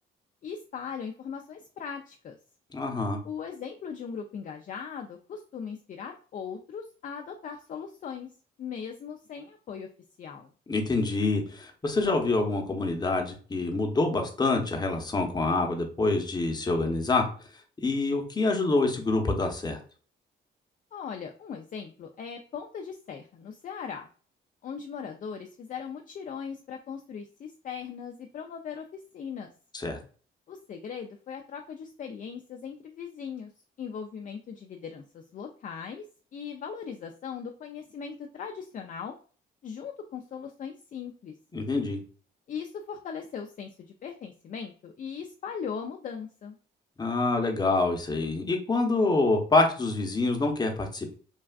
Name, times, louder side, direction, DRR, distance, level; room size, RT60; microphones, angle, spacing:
voice 1, 0.4-2.4 3.2-8.3 8.6-9.9 10.2-10.5 20.9-24.1 24.6-29.5 30.5-33.5 33.8-36.0 36.3-39.1 39.6-41.3 42.5-46.6, left 6 dB, 40° left, 3 dB, 0.4 m, -39 dB
voice 2, 2.7-3.2 10.7-17.3 17.8-19.8 29.7-30.0 41.5-42.0 47.0-51.1, left 3 dB, 20° left, 3 dB, 0.7 m, -26 dB
3.3 x 2.3 x 2.3 m, 0.41 s
cardioid pair, 90°, 20 cm